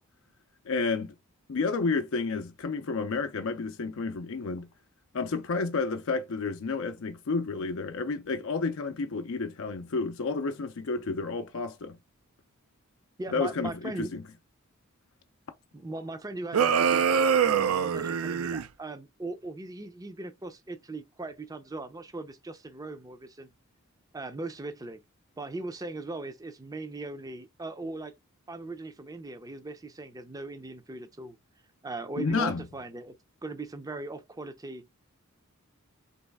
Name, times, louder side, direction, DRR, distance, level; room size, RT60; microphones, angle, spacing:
voice 1, 0.7-1.1 1.5-4.7 5.1-12.0 13.3-14.2 32.2-32.6, left 4 dB, 65° left, 0.5 m, -30 dB
voice 2, 13.2-14.1 15.7-23.5 24.1-25.0 25.4-28.1 28.5-31.4 31.8-33.2 33.4-34.9, right 2 dB, 15° right, 0.5 m, -39 dB
sound 1, 16.5-18.7, right 7 dB, 75° right, 0.4 m, -24 dB
4.0 x 3.1 x 3.4 m
head